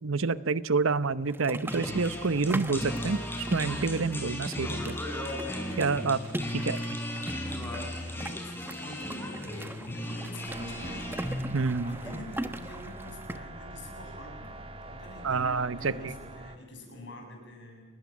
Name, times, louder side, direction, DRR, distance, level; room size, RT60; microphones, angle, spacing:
voice 1, 0.0-5.0 5.8-6.2 6.5-6.8 11.5-11.9 15.2-15.9, right 4 dB, 80° right, 15 dB, 0.8 m, -28 dB
sound 1, 1.3-13.4, right 1 dB, 10° right, 1.1 m, -40 dB
sound 2, 1.7-11.4, left 1 dB, 10° left, 4.1 m, -36 dB
voice 2, 6.6-11.2 11.8-17.8, left 1 dB, 60° left, 2 dB, 7.5 m, -46 dB
sound 3, 10.5-16.6, right 2 dB, 30° right, 1.7 m, -44 dB
29.5 x 20.5 x 7.3 m, 1.3 s
head